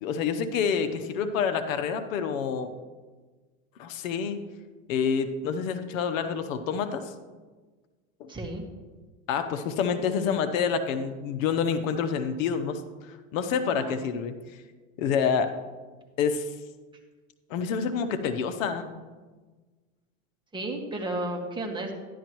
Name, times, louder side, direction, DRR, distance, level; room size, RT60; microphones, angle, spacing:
voice 1, 0.0-2.7 3.8-4.4 4.9-7.1 8.2-8.3 9.3-12.8 13.1-14.4 15.0-15.5 16.2-16.5 17.5-18.9, left 6 dB, 85° left, 9 dB, 0.9 m, -27 dB
voice 2, 8.3-8.6 13.8-13.9 20.5-21.9, right 2 dB, 10° right, 0 dB, 1.7 m, -33 dB
12.5 x 11.0 x 3.1 m, 1.3 s
supercardioid pair, 115°, 38 cm